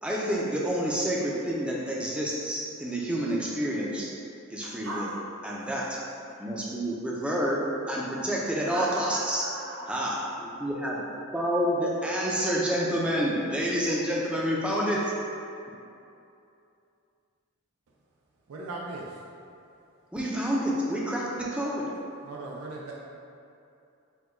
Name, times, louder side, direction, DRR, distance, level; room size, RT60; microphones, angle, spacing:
voice 1, 0.0-4.1 4.5-5.1 5.4-6.0 6.4-9.4 9.9-11.0 11.3-15.1 20.1-21.9, equal, 5° right, -4 dB, 0.4 m, -28 dB
voice 2, 4.6-5.2 5.8-5.9 8.7-10.0, right 1 dB, 65° right, -6 dB, 0.9 m, -38 dB
voice 3, 18.5-19.2 22.2-22.9, right 2 dB, 85° right, -3 dB, 0.4 m, -38 dB
4.4 x 2.2 x 4.3 m, 2.7 s
head